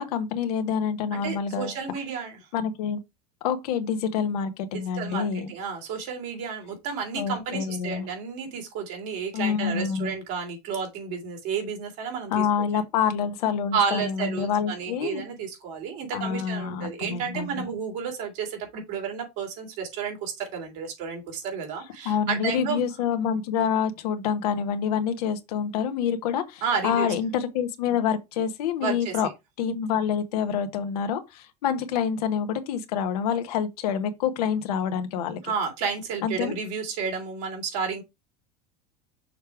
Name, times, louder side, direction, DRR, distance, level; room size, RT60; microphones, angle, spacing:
voice 1, 0.0-1.7 2.5-3.0 3.4-5.5 7.1-8.1 9.3-10.1 12.3-15.2 16.1-17.6 22.0-29.3 29.6-35.4 36.2-36.5, left 7 dB, 80° left, 1.1 m, -27 dB
voice 2, 1.1-2.4 4.7-12.5 13.7-22.8 26.6-27.1 28.8-29.2 35.4-38.0, right 6 dB, 70° right, 3.0 m, -31 dB
6.5 x 3.4 x 4.6 m
supercardioid pair, 100°, 20 cm